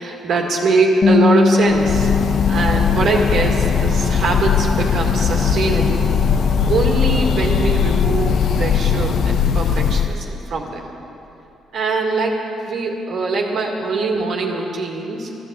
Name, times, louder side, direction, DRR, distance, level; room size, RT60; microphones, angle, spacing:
voice 1, 0.0-2.1 2.5-6.1 6.6-10.9 11.7-15.3, right 3 dB, 65° right, 0 dB, 2.2 m, -22 dB
Bass guitar, 1.0-7.3, left 4 dB, 45° left, 1.3 m, -22 dB
sound 1, 1.1-9.4, right 1 dB, 10° right, 1.1 m, -35 dB
Breathing / Bird, 1.7-10.2, left 7 dB, 65° left, 0.4 m, -19 dB
14.0 x 11.0 x 8.4 m, 2.9 s
cardioid pair, 90°, 0 cm